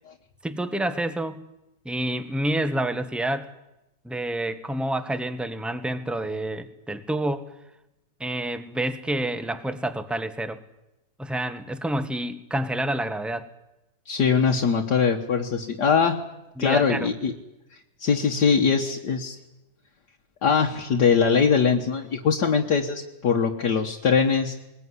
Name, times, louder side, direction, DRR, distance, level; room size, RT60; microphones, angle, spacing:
voice 1, 0.4-1.4 1.8-3.5 4.0-7.5 8.2-10.6 11.2-13.5 16.6-17.1, right 1 dB, ahead, 11 dB, 1.0 m, -28 dB
voice 2, 14.1-16.2 16.6-17.3 18.0-19.4 20.4-24.6, left 6 dB, 65° left, 1 dB, 1.9 m, -22 dB
21.5 x 20.5 x 9.8 m, 0.93 s
omnidirectional pair, 2.0 m